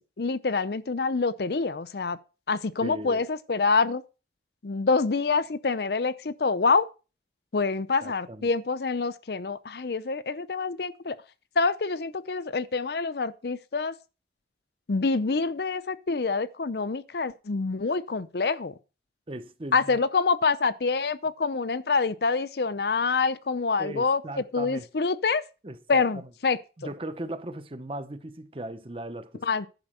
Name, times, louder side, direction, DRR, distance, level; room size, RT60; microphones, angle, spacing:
voice 1, 0.2-2.2 2.5-4.0 4.6-6.9 7.5-11.2 11.6-13.9 14.9-18.7 19.7-24.2 24.5-25.4 25.9-26.6 29.4-29.7, left 4 dB, 65° left, 0.6 m, -26 dB
voice 2, 2.8-3.2 8.0-8.5 19.3-20.0 23.8-24.9 25.6-26.3 26.8-29.5, right 1 dB, 30° right, 0.9 m, -38 dB
10.5 x 5.2 x 6.7 m
head